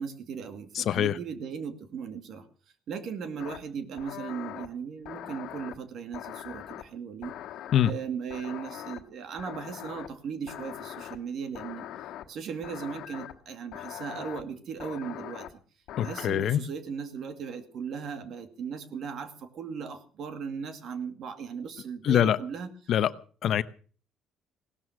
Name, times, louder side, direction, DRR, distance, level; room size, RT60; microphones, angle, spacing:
voice 1, 0.0-2.5 2.9-7.3 7.8-11.9 12.3-15.5 16.0-22.7, right 6 dB, 50° right, 2.3 m, -37 dB
voice 2, 0.7-1.2 7.7-7.9 16.0-16.6 22.0-22.4 22.9-23.1 23.4-23.6, left 10 dB, 50° left, 0.8 m, -24 dB
sound 1, 3.4-3.6 4.0-4.7 5.1-5.8 6.1-6.8 7.2-7.9 8.3-9.0 9.4-10.1 10.5-11.2 11.5-12.3 12.6-13.3 13.7-14.4 14.8-15.5 15.9-16.3, left 12 dB, 65° left, 1.6 m, -41 dB
17.5 x 12.5 x 6.2 m
cardioid pair, 150°, 0 cm